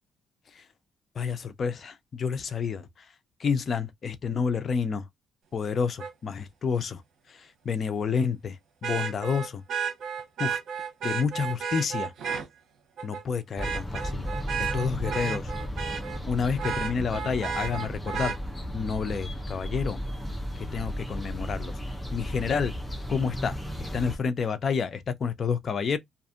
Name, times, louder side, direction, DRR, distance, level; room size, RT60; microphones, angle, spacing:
voice 1, 1.2-2.8 3.4-5.0 5.5-7.0 7.7-8.5 8.8-9.6 10.4-10.6 11.0-12.1 13.0-14.3 14.6-15.5 16.3-18.3 18.7-20.0 20.7-21.7 22.1-22.7 23.1-23.5 23.8-26.0, left 6 dB, 50° left, 0.5 m, -29 dB
Vehicle horn car horn honking, 6.0-6.1 8.8-12.5 13.0-13.2 13.6-16.2 16.6-18.4 20.2-20.3, right 7 dB, 70° right, 0.9 m, -32 dB
sound 1, 13.6-24.2, equal, 10° left, 0.7 m, -34 dB
2.6 x 2.5 x 2.4 m
cardioid pair, 90°, 0 cm